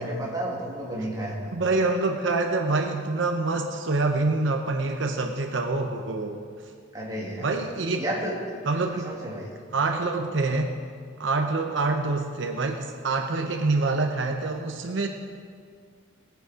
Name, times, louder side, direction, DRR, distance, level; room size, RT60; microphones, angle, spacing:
voice 1, 0.0-1.6 6.9-7.5 8.0-8.3 9.0-9.5, right 1 dB, 20° right, -5 dB, 2.5 m, -31 dB
voice 2, 1.5-6.4 7.4-8.0 8.7-9.1 9.7-10.7 11.2-15.1, right 3 dB, 75° right, 3 dB, 0.8 m, -26 dB
19.0 x 7.1 x 5.1 m, 2.1 s
head